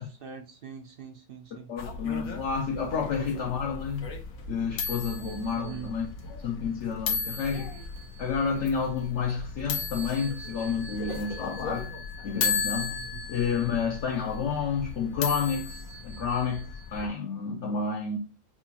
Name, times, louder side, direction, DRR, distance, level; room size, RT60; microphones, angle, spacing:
voice 1, 0.0-1.7 5.6-5.9 12.9-13.2, right 8 dB, 65° right, 0.6 m, -43 dB
voice 2, 1.7-4.1 4.5-7.8 8.2-12.0 12.2-13.0 13.3-18.2, left 6 dB, 65° left, 0.9 m, -30 dB
sound 1, 1.8-17.1, left 5 dB, 80° left, 1.3 m, -35 dB
5.9 x 2.3 x 2.9 m
omnidirectional pair, 1.4 m